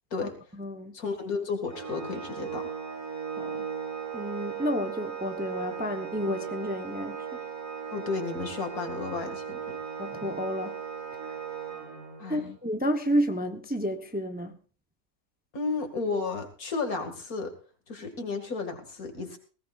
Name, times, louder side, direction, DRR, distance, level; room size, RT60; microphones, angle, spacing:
voice 1, 0.2-1.0 3.4-3.7 4.1-7.4 10.0-10.7 12.3-14.6, equal, 5° right, 0.9 m, -31 dB
voice 2, 0.9-2.7 7.9-9.8 12.2-12.6 15.5-17.5 17.9-19.4, left 4 dB, 75° left, 2.7 m, -33 dB
Organ, 1.7-12.4, right 7 dB, 85° right, 4.0 m, -37 dB
19.5 x 17.0 x 2.5 m
omnidirectional pair, 1.6 m